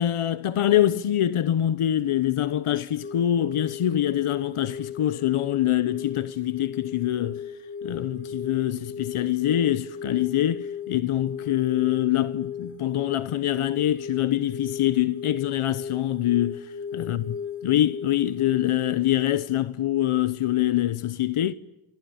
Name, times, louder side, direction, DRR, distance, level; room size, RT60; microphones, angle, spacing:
voice 1, 0.0-7.4 7.8-16.7 16.9-17.2 17.6-21.5, left 12 dB, 85° left, 1.0 m, -24 dB
sound 1, 3.0-18.9, left 6 dB, 25° left, 3.0 m, -37 dB
29.0 x 25.5 x 7.1 m
cardioid pair, 75°, 49 cm